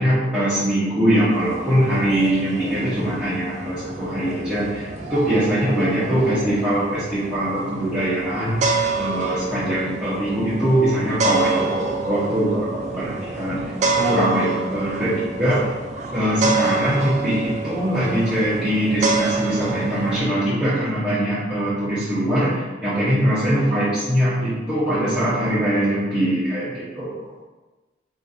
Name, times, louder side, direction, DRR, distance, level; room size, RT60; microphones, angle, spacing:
voice 1, 0.0-15.7 16.1-27.3, right 1 dB, 5° right, -14 dB, 0.9 m, -22 dB
sound 1, 1.2-20.2, right 3 dB, 40° right, 0.4 m, -28 dB
5.0 x 2.7 x 2.4 m, 1.2 s
head